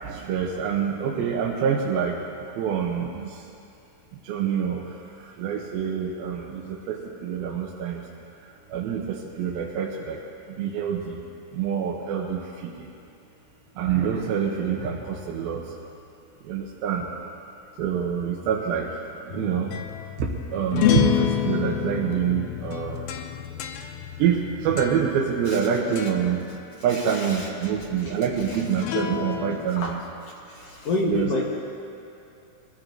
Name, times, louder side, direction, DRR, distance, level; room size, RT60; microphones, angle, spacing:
voice 1, 0.0-2.1 2.6-3.3 4.3-4.8 5.4-7.0 7.2-8.0 8.7-10.2 10.6-11.2 11.6-12.4 13.8-15.6 16.5-17.0 17.8-18.9 19.3-19.7 20.5-23.0 24.2-26.4 26.8-30.0 31.1-31.4, right 7 dB, 90° right, -2 dB, 2.7 m, -26 dB
sound 1, 19.3-25.7 26.0-26.4 28.7-29.7, left 10 dB, 85° left, 2.5 m, -28 dB
voice 2, 26.9-27.5 28.0-28.1 28.5-28.6 29.8-30.0 30.5-31.4, left 2 dB, 60° left, -2 dB, 1.7 m, -29 dB
23.5 x 15.5 x 2.6 m, 2.7 s
omnidirectional pair, 4.2 m